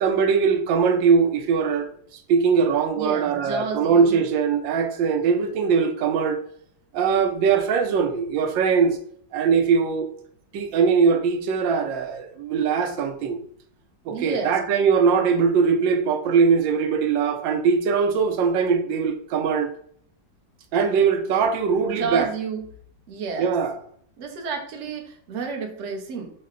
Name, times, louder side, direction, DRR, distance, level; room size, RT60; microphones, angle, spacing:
voice 1, 0.0-1.9 2.3-6.4 6.9-9.0 9.3-10.1 10.5-13.4 14.1-19.7 20.7-22.3 23.4-23.8, right 6 dB, 85° right, 1.3 m, -21 dB
voice 2, 3.0-4.2 14.1-14.6 21.9-22.6 23.1-23.5 24.2-26.3, right 5 dB, 55° right, 0.8 m, -30 dB
5.5 x 2.1 x 3.6 m
omnidirectional pair, 2.0 m